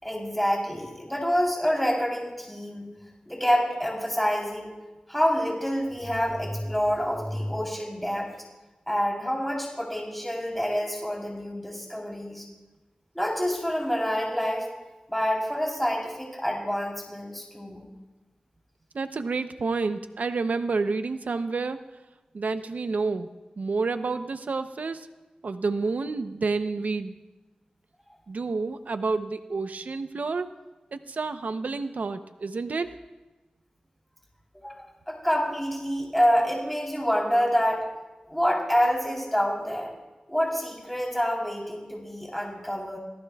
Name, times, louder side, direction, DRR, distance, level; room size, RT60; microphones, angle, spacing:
voice 1, 0.0-2.9 3.3-4.7 5.1-8.3 8.9-12.5 13.1-14.7 15.1-17.9 34.5-37.9 38.3-39.9 40.3-43.0, equal, 5° left, -2 dB, 3.7 m, -27 dB
voice 2, 18.9-21.8 22.3-23.3 23.6-25.1 25.4-27.2 28.3-30.5 30.9-33.0, right 4 dB, 90° right, 9 dB, 0.7 m, -29 dB
27.0 x 18.0 x 2.4 m, 1.1 s
wide cardioid pair, 75°, 3 cm